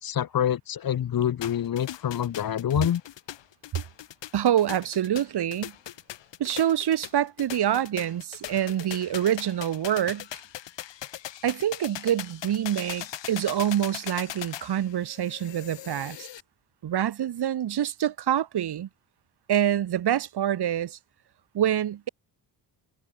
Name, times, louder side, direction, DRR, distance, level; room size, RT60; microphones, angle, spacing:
voice 1, 0.0-3.0, left 10 dB, 50° left, 1.1 m, -26 dB
sound 1, 1.4-16.4, left 12 dB, 70° left, 1.8 m, -40 dB
voice 2, 4.3-5.7 6.4-10.3 11.4-16.3 16.8-18.9 19.5-21.0 21.5-22.1, right 10 dB, 60° right, 1.5 m, -26 dB
cardioid pair, 75°, 45 cm